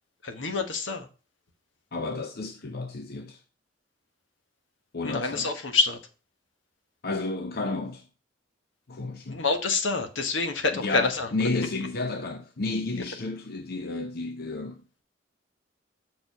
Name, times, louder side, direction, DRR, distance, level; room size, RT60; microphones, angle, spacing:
voice 1, 0.2-1.1 5.0-6.0 9.3-11.3, left 4 dB, 75° left, 1.2 m, -27 dB
voice 2, 1.9-3.4 4.9-5.5 7.0-8.1 8.9-9.4 10.7-14.8, left 3 dB, 55° left, 0.7 m, -32 dB
6.7 x 4.5 x 5.3 m
head